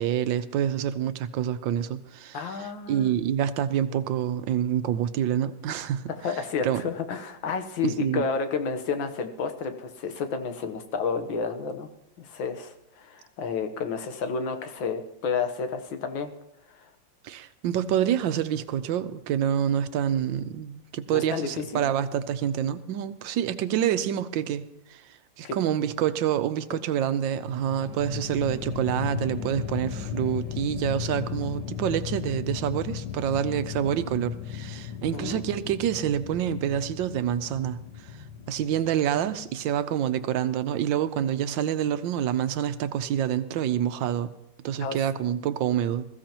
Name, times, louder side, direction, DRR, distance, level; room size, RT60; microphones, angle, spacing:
voice 1, 0.0-2.4 2.9-6.1 6.6-6.8 7.8-8.2 17.2-24.6 24.9-25.0 25.4-37.8 38.5-44.3 44.6-46.1, right 10 dB, 85° right, 1.4 m, -27 dB
voice 2, 2.3-3.1 6.2-11.9 12.2-16.3 16.7-16.9 21.1-21.9 25.4-25.6 26.7-26.8 35.1-35.4 44.8-45.0, left 5 dB, 90° left, 1.9 m, -31 dB
sound 1, 27.4-39.7, left 9 dB, 75° left, 1.5 m, -36 dB
21.0 x 15.0 x 3.0 m
omnidirectional pair, 2.0 m